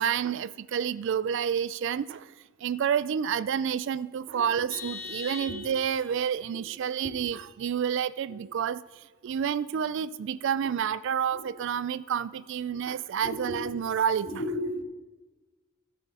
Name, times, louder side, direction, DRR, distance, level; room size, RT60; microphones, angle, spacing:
voice 1, 0.0-2.3 2.6-8.8 9.2-14.4, right 8 dB, 60° right, 0.3 m, -29 dB
Vehicle horn car horn honking, 4.7-6.1, left 4 dB, 75° left, 3.0 m, -40 dB
voice 2, 13.2-13.6 14.2-14.8, left 1 dB, 40° left, 2.1 m, -34 dB
14.0 x 7.6 x 4.9 m
head